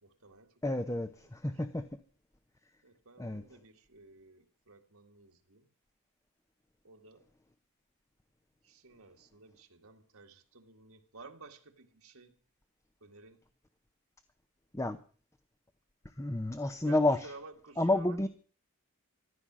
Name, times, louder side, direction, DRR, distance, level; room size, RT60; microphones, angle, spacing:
voice 1, 0.0-1.1 2.8-5.7 6.8-7.2 8.6-12.4 13.0-13.5 16.8-18.3, right 3 dB, 80° right, 2.0 m, -54 dB
voice 2, 0.6-1.9 3.2-3.4 14.7-15.0 16.2-17.3 17.8-18.3, left 2 dB, 15° left, 0.7 m, -30 dB
14.0 x 12.5 x 6.2 m
head